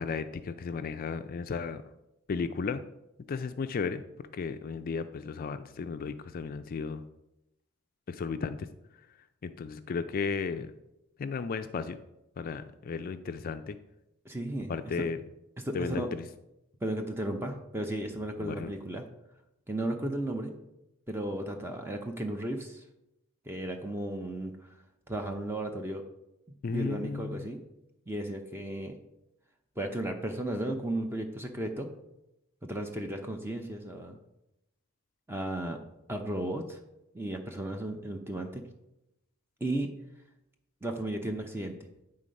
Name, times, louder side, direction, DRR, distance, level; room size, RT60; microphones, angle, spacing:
voice 1, 0.0-1.8 2.3-2.8 3.3-4.0 4.3-7.0 8.1-8.7 9.4-10.7 11.2-12.0 12.4-13.8 14.7-15.2 15.7-16.2 18.4-18.7 26.6-27.5, left 5 dB, 40° left, 10 dB, 0.3 m, -34 dB
voice 2, 14.2-15.1 15.6-16.1 16.8-19.0 19.7-20.5 21.1-22.8 23.5-24.8 25.1-26.0 26.7-27.6 28.1-28.9 29.8-31.9 32.6-34.2 35.3-35.8 36.1-36.8 37.1-38.6 39.6-39.9 40.8-41.7, right 1 dB, 10° right, 4 dB, 0.6 m, -34 dB
8.9 x 3.8 x 5.2 m, 0.88 s
head